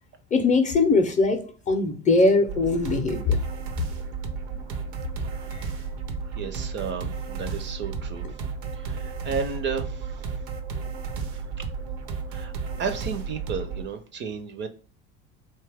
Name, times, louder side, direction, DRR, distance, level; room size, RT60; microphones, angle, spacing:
voice 1, 0.3-3.4 5.5-5.7, left 3 dB, 25° left, 0.5 m, -21 dB
sound 1, 2.5-13.8, right 5 dB, 80° right, 0.6 m, -33 dB
voice 2, 5.3-5.8 6.2-8.3 8.7-10.3 11.6-11.7 12.3-12.5 12.8-14.7, right 5 dB, 40° right, 0.4 m, -33 dB
2.8 x 2.3 x 3.3 m
supercardioid pair, 100°, 31 cm